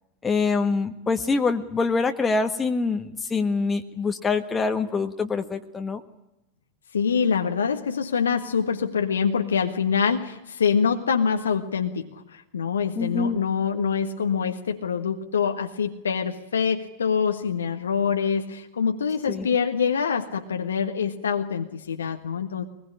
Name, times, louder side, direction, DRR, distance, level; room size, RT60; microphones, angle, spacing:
voice 1, 0.2-6.0 12.9-13.4 19.3-19.5, left 4 dB, 15° left, 6 dB, 1.6 m, -25 dB
voice 2, 6.9-22.6, left 6 dB, 70° left, 4 dB, 1.5 m, -25 dB
23.0 x 20.5 x 9.9 m, 0.87 s
figure-of-eight pair, 90°, 0 cm